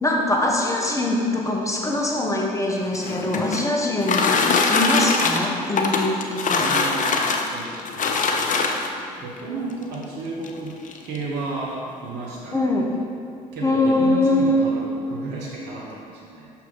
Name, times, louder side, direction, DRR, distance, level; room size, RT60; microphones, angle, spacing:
voice 1, 0.0-6.7 12.5-12.9 13.6-14.7, left 1 dB, 15° left, -1 dB, 1.3 m, -22 dB
sound 1, 2.8-9.1 9.9-10.0 10.4-10.5 10.8-11.2, left 4 dB, 40° left, 0.7 m, -22 dB
voice 2, 6.6-8.6 9.2-10.8 11.0-12.7 13.3-16.5, right 3 dB, 60° right, -4 dB, 1.1 m, -33 dB
6.0 x 5.7 x 4.0 m, 2.3 s
hypercardioid pair, 55°, 19 cm